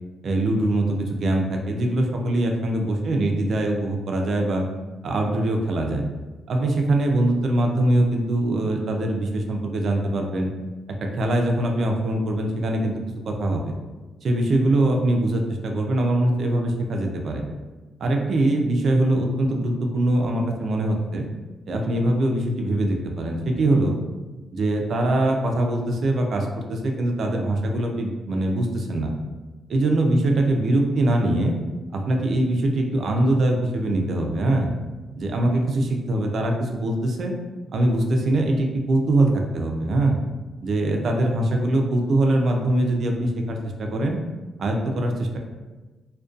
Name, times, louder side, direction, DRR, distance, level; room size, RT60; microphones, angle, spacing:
voice 1, 0.2-4.7 5.0-6.0 6.5-10.5 10.9-12.9 13.3-13.7 14.2-17.4 18.0-21.3 21.7-24.0 24.5-29.1 29.7-31.6 31.9-34.7 35.2-37.3 37.7-40.2 40.6-44.2 44.6-45.4, right 1 dB, 55° right, 2 dB, 0.3 m, -22 dB
2.5 x 2.1 x 2.4 m, 1.2 s
cardioid pair, 130°, 0 cm